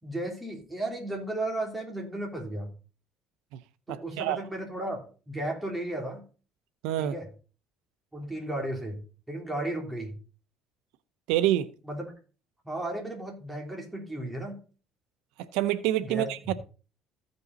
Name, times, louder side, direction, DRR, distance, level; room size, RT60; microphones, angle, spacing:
voice 1, 0.0-2.7 3.9-6.2 7.0-7.3 8.1-9.0 9.3-10.1 11.8-12.1 12.6-14.6 16.1-16.5, right 1 dB, 10° right, 3.3 m, -34 dB
voice 2, 3.9-4.4 6.8-7.1 11.3-11.7 15.5-16.5, right 13 dB, 90° right, 0.6 m, -26 dB
15.0 x 5.3 x 4.0 m
cardioid pair, 130°, 0 cm